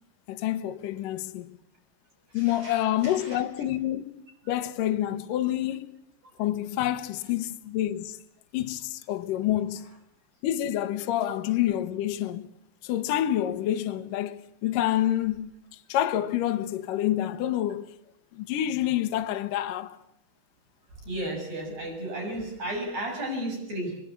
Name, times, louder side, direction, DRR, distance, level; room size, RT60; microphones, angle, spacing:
voice 1, 0.3-1.5 2.3-4.1 4.5-5.9 6.4-8.2 8.5-9.8 10.4-12.5 12.8-15.5 15.9-17.9 18.3-20.0, left 12 dB, 75° left, 2.0 m, -28 dB
voice 2, 2.3-3.4 21.0-24.0, right 1 dB, 35° right, 7.6 m, -34 dB
24.0 x 23.5 x 8.4 m
omnidirectional pair, 5.3 m